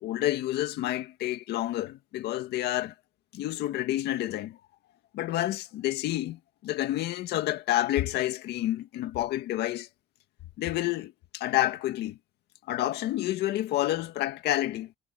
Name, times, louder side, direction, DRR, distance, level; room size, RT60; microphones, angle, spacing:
voice 1, 0.0-2.9 3.3-4.6 5.1-9.9 10.6-12.2 12.7-14.9, left 14 dB, 80° left, 1.9 m, -29 dB
cardioid pair, 110°, 17 cm